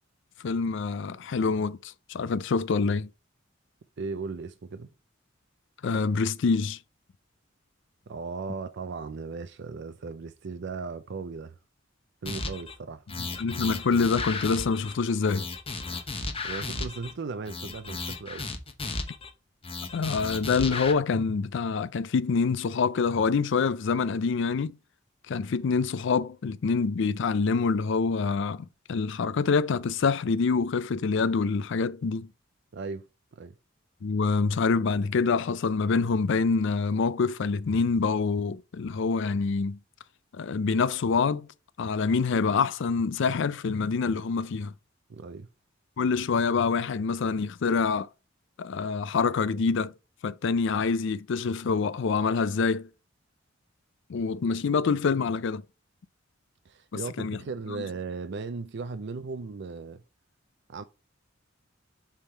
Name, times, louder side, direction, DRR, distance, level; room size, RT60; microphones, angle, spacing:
voice 1, 0.4-3.1 5.8-6.8 13.2-15.5 19.9-24.8 25.3-32.3 34.0-39.8 40.3-41.5 41.8-44.7 46.0-48.1 48.6-49.9 50.2-52.9 54.1-55.6 57.2-57.4 57.7-57.8, left 4 dB, 65° left, 0.4 m, -26 dB
voice 2, 4.0-4.9 8.1-11.6 12.2-13.0 16.0-18.5 32.7-33.1 33.3-33.6 45.1-45.5 56.7-60.0 60.7-60.8, right 4 dB, 60° right, 0.5 m, -37 dB
sound 1, 12.3-12.7 13.1-14.9 15.3-17.1 17.5-19.3 19.6-20.9, left 3 dB, 30° left, 0.9 m, -34 dB
7.3 x 3.6 x 4.4 m
head